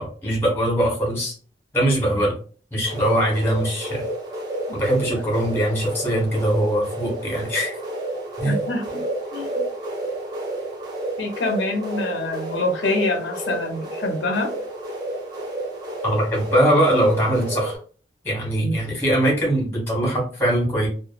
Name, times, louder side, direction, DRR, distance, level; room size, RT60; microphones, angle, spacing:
voice 1, 0.0-1.3 1.7-2.4 2.7-4.1 4.7-7.8 8.4-8.6 16.0-17.8 18.2-20.9, right 1 dB, 15° left, -2 dB, 1.2 m, -21 dB
sound 1, 2.8-17.8, right 1 dB, 25° right, 0.7 m, -31 dB
voice 2, 8.4-9.0 9.3-9.5 11.2-14.5 18.6-18.7, left 2 dB, 85° left, 4 dB, 0.6 m, -25 dB
2.8 x 2.2 x 2.4 m, 0.40 s
head